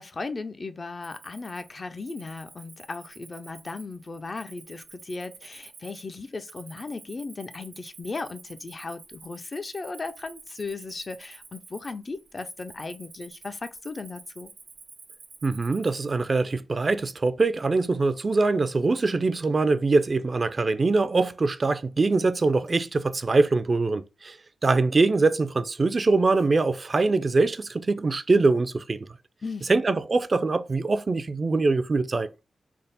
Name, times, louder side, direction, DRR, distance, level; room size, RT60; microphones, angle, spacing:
voice 1, 0.0-14.5 29.4-29.8, left 3 dB, 45° left, 0.4 m, -36 dB
Cricket, 1.0-16.4, right 4 dB, 80° right, 0.7 m, -49 dB
voice 2, 15.4-24.4 24.6-29.0 29.7-32.3, right 3 dB, 45° right, 0.4 m, -23 dB
3.5 x 2.0 x 3.9 m
cardioid pair, 60°, 0 cm